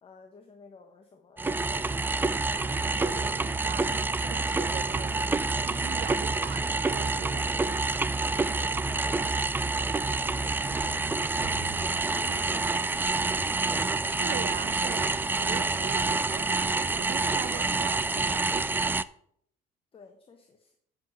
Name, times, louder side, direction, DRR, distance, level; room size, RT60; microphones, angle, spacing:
voice 1, 0.0-3.5 8.5-9.4 10.2-13.5 19.9-20.7, left 5 dB, 35° left, 4 dB, 1.3 m, -51 dB
sound 1, 1.4-19.0, right 3 dB, 10° right, 0.4 m, -28 dB
voice 2, 2.7-7.8 12.2-12.7 13.7-18.8, right 12 dB, 75° right, 14 dB, 0.6 m, -41 dB
sound 2, 11.4-17.2 17.6-17.7, right 3 dB, 45° right, 3.0 m, -49 dB
8.3 x 7.5 x 5.9 m, 0.66 s
cardioid pair, 110°, 17 cm